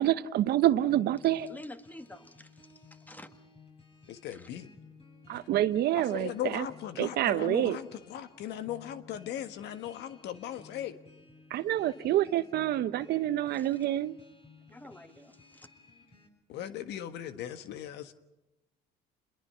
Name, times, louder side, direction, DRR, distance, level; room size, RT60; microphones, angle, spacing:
voice 1, 0.0-1.5 5.3-6.7 7.0-7.8 11.5-14.2, right 13 dB, 65° right, 13 dB, 1.0 m, -27 dB
sound 1, 0.9-16.3, left 4 dB, 30° left, 7.8 m, -56 dB
voice 2, 1.5-2.5 3.1-3.3 4.3-4.5 13.5-13.7 14.7-15.7, left 1 dB, 10° left, 8 dB, 1.8 m, -48 dB
voice 3, 4.1-4.7 5.9-10.9 16.5-18.1, left 11 dB, 70° left, 10 dB, 1.5 m, -38 dB
27.5 x 21.5 x 5.8 m, 0.98 s
supercardioid pair, 90°, 18 cm